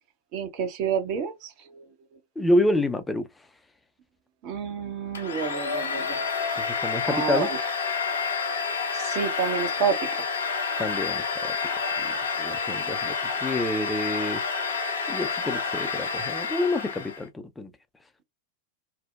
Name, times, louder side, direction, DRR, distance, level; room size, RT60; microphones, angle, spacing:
voice 1, 0.3-2.2 4.4-6.2 7.1-7.7 8.9-10.3 12.8-13.0, right 6 dB, 40° right, 0.7 m, -30 dB
voice 2, 2.4-3.3 6.6-7.5 10.8-11.6 12.0-14.4 14.7-14.8 15.1-17.7, left 1 dB, 10° left, 0.4 m, -28 dB
Domestic sounds home sounds, 5.1-17.2, left 5 dB, 70° left, 0.6 m, -29 dB
2.7 x 2.0 x 2.2 m
figure-of-eight pair, 90°, 0 cm